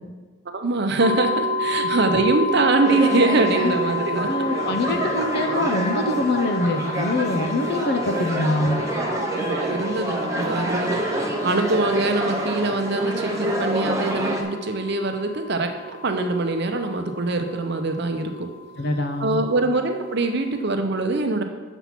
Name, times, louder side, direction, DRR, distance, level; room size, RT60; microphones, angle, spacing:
voice 1, 0.5-4.3 9.3-18.5 19.2-21.4, right 2 dB, 50° right, 5 dB, 0.7 m, -23 dB
sound 1, 1.0-20.6, left 2 dB, 65° right, 1.1 m, -31 dB
sound 2, 2.8-14.4, right 1 dB, 15° right, 0.7 m, -28 dB
voice 2, 4.3-8.8 18.8-19.4, left 2 dB, 50° left, 7 dB, 0.6 m, -24 dB
7.1 x 5.6 x 6.0 m, 1.4 s
head